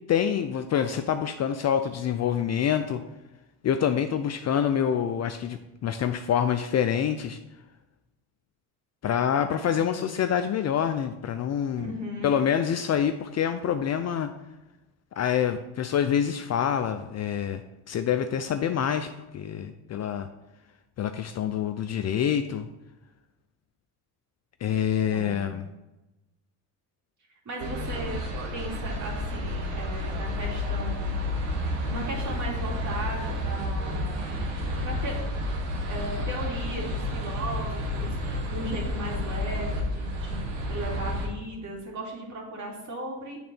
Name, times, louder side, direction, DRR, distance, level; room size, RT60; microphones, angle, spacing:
voice 1, 0.1-3.0 3.6-7.4 9.0-11.9 12.2-14.3 15.2-17.6 17.9-20.3 21.0-22.7 24.6-25.7, left 8 dB, 40° left, 9 dB, 0.5 m, -26 dB
voice 2, 9.7-10.0 11.8-12.4 25.1-25.4 27.4-28.2 28.5-31.1 31.8-34.2 34.8-35.2 35.9-43.4, right 1 dB, 40° right, -2 dB, 2.5 m, -36 dB
sound 1, 27.6-41.3, left 1 dB, 80° right, 1.5 m, -30 dB
8.5 x 3.8 x 4.3 m, 0.99 s
supercardioid pair, 85°, 44 cm